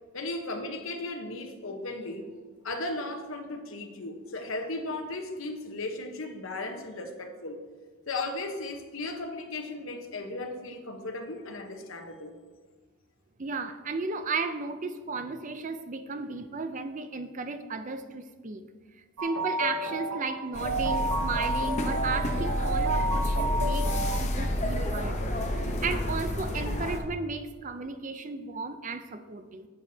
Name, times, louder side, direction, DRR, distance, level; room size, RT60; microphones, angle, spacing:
voice 1, 0.1-2.3 2.6-7.6 8.1-12.3, left 2 dB, 70° left, 4 dB, 1.0 m, -36 dB
voice 2, 13.4-18.6 19.2-23.9 24.2-25.2 25.5-29.7, right 4 dB, 35° right, 9 dB, 0.5 m, -34 dB
sound 1, 19.2-24.3, right 2 dB, 70° right, 0.9 m, -31 dB
sound 2, 20.5-27.0, left 1 dB, 30° left, 0.9 m, -29 dB
12.0 x 7.8 x 2.8 m, 1.4 s
head